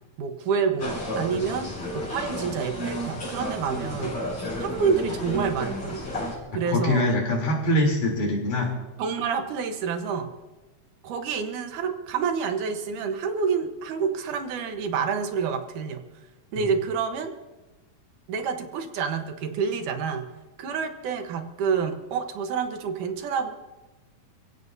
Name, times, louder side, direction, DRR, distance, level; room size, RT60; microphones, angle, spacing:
voice 1, 0.2-4.2 4.6-6.0 6.5-7.1 9.0-10.3 11.0-16.0 16.5-17.3 18.3-20.3 20.6-23.5, right 6 dB, 80° right, 6 dB, 2.7 m, -28 dB
sound 1, 0.8-6.4, equal, 45° left, 6.8 m, -32 dB
voice 2, 6.5-8.7 16.6-16.7, left 1 dB, 85° left, -1 dB, 5.0 m, -24 dB
28.5 x 16.0 x 2.7 m, 1.2 s
omnidirectional pair, 3.5 m